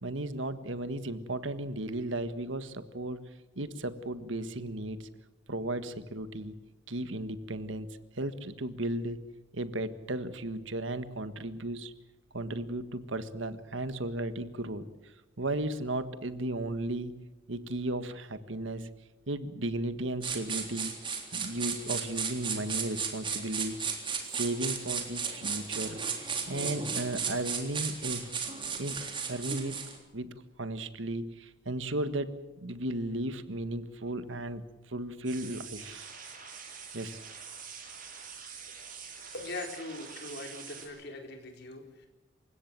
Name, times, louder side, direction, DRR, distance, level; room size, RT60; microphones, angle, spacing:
voice 1, 0.0-3.2 3.5-5.1 5.5-6.5 6.9-9.2 9.5-11.9 12.3-17.1 17.5-18.9 19.3-21.0 21.3-23.8 24.2-28.2 28.8-29.0 29.3-36.1 36.9-37.2, right 1 dB, 75° right, 11 dB, 1.6 m, -35 dB
sound 1, 20.2-30.0, right 6 dB, 25° right, 3.6 m, -35 dB
sound 2, 35.2-40.9, right 6 dB, 45° right, 6.6 m, -45 dB
voice 2, 39.3-42.1, left 2 dB, 60° left, 3 dB, 4.5 m, -41 dB
28.0 x 16.5 x 7.6 m, 1.1 s
head